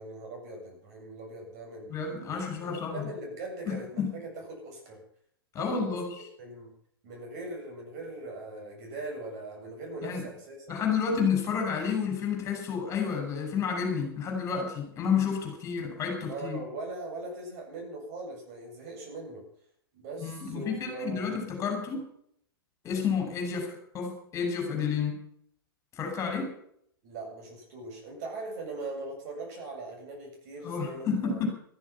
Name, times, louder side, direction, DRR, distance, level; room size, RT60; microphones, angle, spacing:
voice 1, 0.0-2.0 2.3-5.0 5.6-6.0 6.4-6.7 7.0-10.7 16.1-19.4 19.9-21.4 27.0-31.4, right 2 dB, 45° right, 1 dB, 7.8 m, -40 dB
voice 2, 1.9-3.1 3.7-4.1 5.5-6.1 10.0-10.2 10.7-16.6 20.2-22.1 22.8-25.2 25.9-26.5 30.6-31.5, left 6 dB, 25° left, 3 dB, 6.2 m, -30 dB
15.5 x 14.0 x 5.9 m, 0.66 s
figure-of-eight pair, 105°, 13 cm